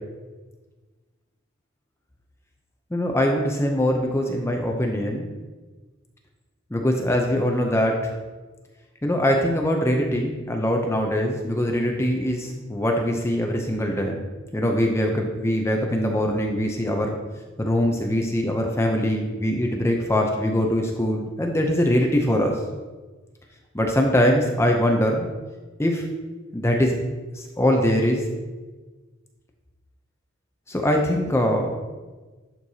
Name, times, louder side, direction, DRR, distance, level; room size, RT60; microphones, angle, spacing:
voice 1, 2.9-5.3 6.7-8.1 9.0-14.2 14.5-17.2 17.6-22.6 23.7-25.3 25.8-26.1 26.5-27.0 27.4-28.2 30.7-31.7, equal, 15° left, 2 dB, 0.5 m, -22 dB
11.0 x 4.5 x 2.8 m, 1.3 s
head